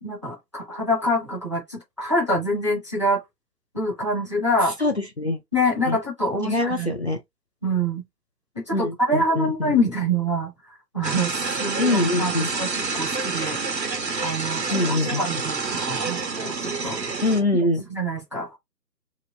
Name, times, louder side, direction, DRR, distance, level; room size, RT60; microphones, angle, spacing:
voice 1, 0.0-3.2 3.7-4.8 5.5-6.9 7.6-8.0 8.6-10.5 10.9-11.3 11.6-13.6 14.2-17.0 17.9-18.6, equal, 20° right, 0.6 m, -25 dB
voice 2, 4.8-5.4 5.9-6.0 6.4-7.2 8.7-9.8 11.8-12.5 14.7-15.2 17.2-17.8, left 2 dB, 40° left, 0.5 m, -24 dB
sound 1, 11.0-17.4, right 4 dB, 80° right, 1.2 m, -28 dB
2.9 x 2.4 x 4.3 m
figure-of-eight pair, 145°, 50 cm